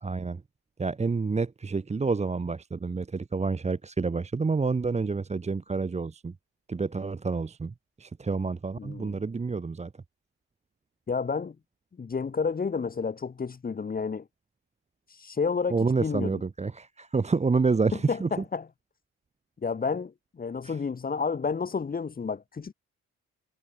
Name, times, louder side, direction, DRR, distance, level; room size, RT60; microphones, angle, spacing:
voice 1, 0.0-0.4 0.8-6.3 6.7-9.9 15.7-18.4 20.6-20.8, right 4 dB, 20° right, 1.1 m, -28 dB
voice 2, 8.8-9.2 11.1-11.5 12.0-14.2 15.2-16.4 18.1-18.6 19.6-22.7, left 5 dB, 30° left, 1.2 m, -30 dB
cardioid pair, 90°, 30 cm